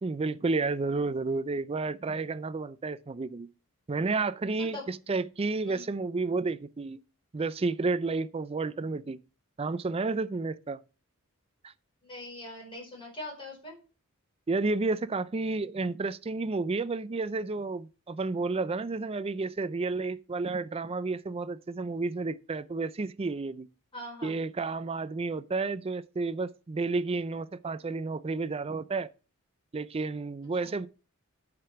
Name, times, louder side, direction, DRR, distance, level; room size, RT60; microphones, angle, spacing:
voice 1, 0.0-3.5 3.9-7.0 7.3-9.2 9.6-10.8 11.6-11.7 14.5-23.7 24.2-29.1 29.7-30.9, right 3 dB, 25° right, 0.4 m, -31 dB
voice 2, 4.6-4.9 5.6-5.9 12.0-13.8 23.9-24.4 30.6-30.7, left 1 dB, 25° left, 4.5 m, -42 dB
8.7 x 5.2 x 5.8 m
head